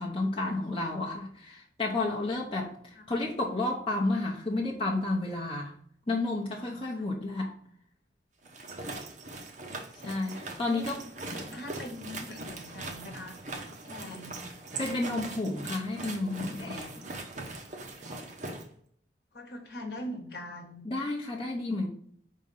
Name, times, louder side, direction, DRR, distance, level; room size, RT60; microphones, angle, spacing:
voice 1, 0.0-2.7 3.1-5.7 6.1-7.5 10.0-11.0 14.8-17.0 20.8-21.9, left 2 dB, 30° left, -3 dB, 0.9 m, -31 dB
sound 1, 8.4-18.6, right 2 dB, 40° right, 1.0 m, -41 dB
voice 2, 10.6-10.9 11.2-13.3 13.8-14.4 19.3-20.9, left 1 dB, 55° left, 2 dB, 1.3 m, -42 dB
5.4 x 3.8 x 5.4 m, 0.63 s
head